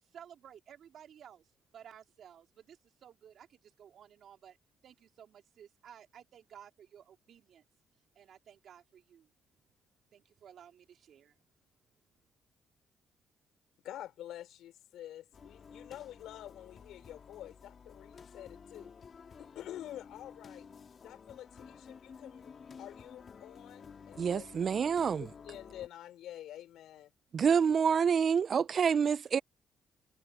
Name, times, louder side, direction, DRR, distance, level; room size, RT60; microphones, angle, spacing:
voice 1, 0.0-4.6 4.8-7.6 8.1-9.3 10.1-11.4, right 9 dB, 65° right, 3.1 m, -55 dB
voice 2, 13.8-18.9 19.4-20.7 21.0-22.5 22.8-24.5 25.1-27.1, left 12 dB, 85° left, 4.9 m, -48 dB
sound 1, 15.3-25.9, left 6 dB, 45° left, 2.4 m, -52 dB
voice 3, 24.2-25.3 27.3-29.4, right 6 dB, 50° right, 0.3 m, -27 dB
cardioid pair, 90°, 0 cm